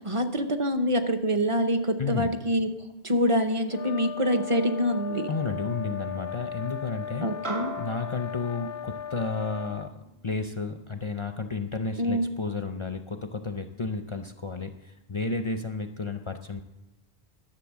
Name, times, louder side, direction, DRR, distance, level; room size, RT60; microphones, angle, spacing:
voice 1, 0.0-2.7 3.0-5.3 7.2-7.7 12.0-12.3, equal, 35° right, 8 dB, 0.7 m, -25 dB
voice 2, 2.0-2.3 5.3-7.3 7.8-9.9 10.2-16.6, left 4 dB, 40° left, 7 dB, 0.5 m, -32 dB
sound 1, 3.7-9.9, left 8 dB, 80° left, 1.0 m, -37 dB
sound 2, 7.4-12.1, right 2 dB, 80° right, 2.1 m, -42 dB
11.5 x 6.7 x 7.3 m, 0.97 s
omnidirectional pair, 1.1 m